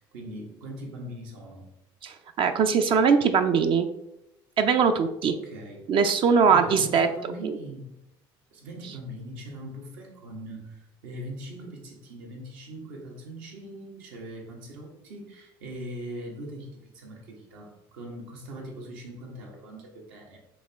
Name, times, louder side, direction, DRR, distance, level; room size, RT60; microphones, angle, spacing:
voice 1, 0.0-1.6 5.3-5.9 6.5-7.9 8.5-20.4, right 1 dB, 80° right, 0 dB, 1.4 m, -41 dB
voice 2, 2.0-3.9 4.6-5.3 5.9-7.1 7.4-7.5, right 6 dB, 45° right, 8 dB, 0.4 m, -21 dB
5.1 x 3.0 x 3.4 m, 0.86 s
supercardioid pair, 95°, 12 cm